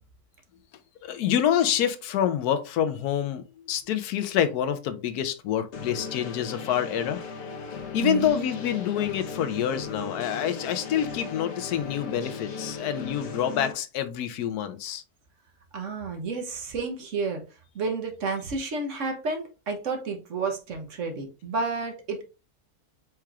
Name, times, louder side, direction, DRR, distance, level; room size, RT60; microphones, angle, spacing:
voice 1, 1.0-7.2 7.9-15.0, left 9 dB, 80° left, 1.1 m, -27 dB
sound 1, 5.7-13.7, left 5 dB, 55° left, 0.9 m, -37 dB
voice 2, 8.0-8.5 15.7-22.2, right 4 dB, 60° right, 1.1 m, -31 dB
4.7 x 4.4 x 2.3 m
omnidirectional pair, 1.6 m